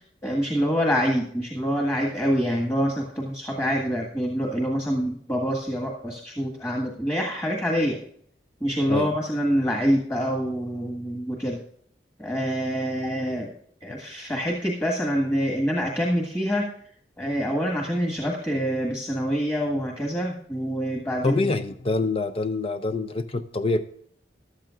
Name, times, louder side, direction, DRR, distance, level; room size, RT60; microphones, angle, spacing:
voice 1, 0.2-8.0 8.6-11.6 12.2-13.5 13.8-16.7 17.2-21.4, equal, 15° left, 0 dB, 1.7 m, -26 dB
voice 2, 21.2-23.9, left 3 dB, 35° left, 9 dB, 0.5 m, -25 dB
14.5 x 12.0 x 2.5 m, 0.62 s
head